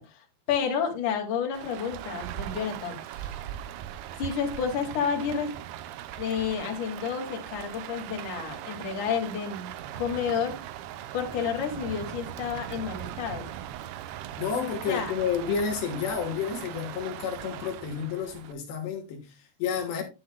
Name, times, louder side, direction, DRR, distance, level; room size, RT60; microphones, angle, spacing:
voice 1, 0.0-3.3 4.2-5.5 6.2-10.6 11.1-13.5 14.9-15.1, left 7 dB, 50° left, 3.4 m, -30 dB
Rain, 1.5-18.5, right 11 dB, 80° right, 2.7 m, -39 dB
voice 2, 14.4-20.0, left 7 dB, 80° left, 3.6 m, -30 dB
11.0 x 9.8 x 2.3 m
omnidirectional pair, 4.8 m